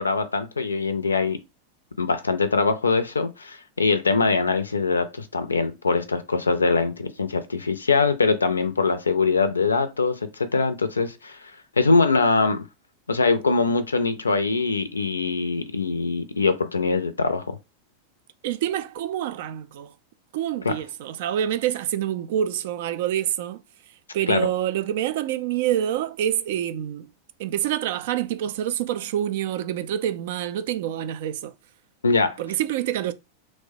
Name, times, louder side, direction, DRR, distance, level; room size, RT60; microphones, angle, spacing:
voice 1, 0.0-1.4 2.0-11.4 11.8-12.6 13.1-17.5 20.7-20.8 24.3-24.5 32.0-32.4, left 4 dB, 75° left, 0.4 m, -22 dB
voice 2, 18.4-19.9 20.3-23.6 24.1-27.1 27.4-31.5 32.4-33.1, right 11 dB, 55° right, 0.3 m, -27 dB
3.1 x 2.1 x 2.7 m
figure-of-eight pair, 90°, 0 cm